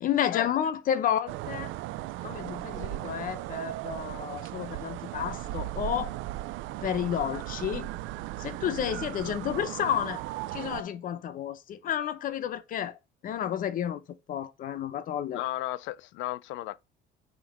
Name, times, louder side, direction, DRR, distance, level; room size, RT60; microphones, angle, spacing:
voice 1, 0.0-1.7 2.2-6.2 6.8-7.9 8.4-10.2 10.5-13.0 13.2-14.0 14.3-15.4, left 9 dB, 45° left, 0.8 m, -31 dB
sound 1, 1.3-10.8, right 16 dB, 75° right, 0.5 m, -37 dB
voice 2, 15.3-16.8, left 15 dB, 75° left, 0.6 m, -34 dB
6.0 x 4.0 x 6.2 m
cardioid pair, 180°, 20 cm